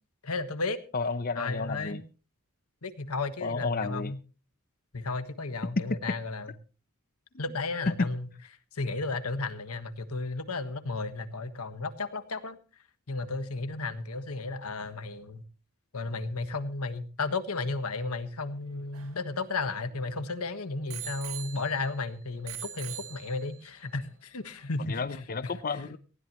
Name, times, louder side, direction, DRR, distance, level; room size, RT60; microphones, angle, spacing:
voice 1, 0.2-0.8 1.3-2.0 2.8-4.2 4.9-6.5 7.4-8.3 8.7-12.6 13.1-15.4 15.9-25.0 25.4-25.5, left 3 dB, 80° left, 10 dB, 1.5 m, -33 dB
voice 2, 0.9-2.0 3.4-4.1 8.0-8.1 24.9-26.0, left 4 dB, 40° left, 11 dB, 0.7 m, -31 dB
Bicycle bell, 18.6-20.2 20.9-22.0 22.5-23.7 24.4-24.5, right 11 dB, 70° right, 1.9 m, -43 dB
19.0 x 16.0 x 3.1 m, 0.35 s
head